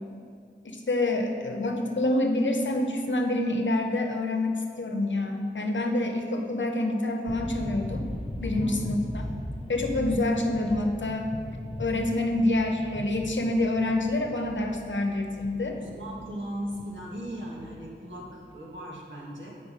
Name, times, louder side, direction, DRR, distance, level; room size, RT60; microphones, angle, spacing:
voice 1, 0.6-8.0 8.4-9.0 9.7-11.3 11.8-15.8, left 2 dB, 75° left, 3 dB, 0.8 m, -27 dB
sound 1, 7.3-18.8, left 1 dB, 30° left, 0.7 m, -38 dB
voice 2, 8.4-8.8 15.7-19.6, right 1 dB, 80° right, -4 dB, 1.5 m, -38 dB
7.4 x 4.8 x 4.9 m, 2.3 s
wide cardioid pair, 50°, 19 cm